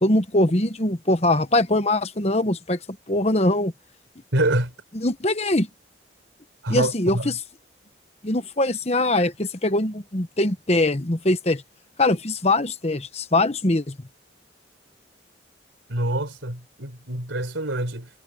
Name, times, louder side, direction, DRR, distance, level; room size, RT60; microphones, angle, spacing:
voice 1, 0.0-2.8 3.1-3.7 4.9-5.7 6.7-7.4 8.2-11.6 12.0-14.0, left 2 dB, 35° left, 1.2 m, -22 dB
voice 2, 4.3-4.7 6.6-7.4 15.9-18.1, right 1 dB, 90° right, 4.2 m, -26 dB
head